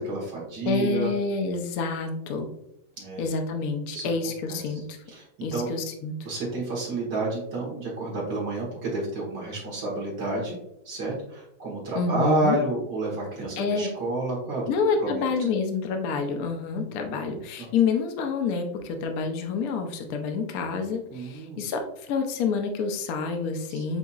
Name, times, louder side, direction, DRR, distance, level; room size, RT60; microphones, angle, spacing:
voice 1, 0.0-1.1 3.0-3.2 3.9-4.1 4.5-4.6 5.1-5.7 6.2-10.6 10.9-14.7 15.0-15.3 16.8-17.7 21.1-21.6 23.7-24.0, right 2 dB, 85° right, -4 dB, 2.1 m, -30 dB
voice 2, 0.6-2.5 3.2-5.0 5.4-6.1 11.9-12.6 13.6-13.9 14.7-24.0, left 4 dB, 65° left, 5 dB, 1.1 m, -28 dB
7.8 x 2.7 x 2.4 m, 0.81 s
omnidirectional pair, 1.8 m